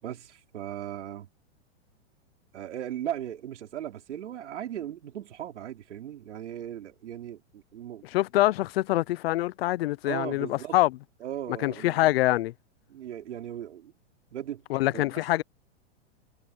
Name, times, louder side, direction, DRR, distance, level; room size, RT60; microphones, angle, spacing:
voice 1, 0.0-1.3 2.5-8.0 10.0-10.8 11.2-12.1 12.9-13.9 14.3-14.6 14.9-15.2, right 11 dB, 85° right, 4.6 m, -37 dB
voice 2, 8.1-10.9 11.6-12.5 14.7-15.4, left 17 dB, 60° left, 0.7 m, -25 dB
hypercardioid pair, 140°, 34 cm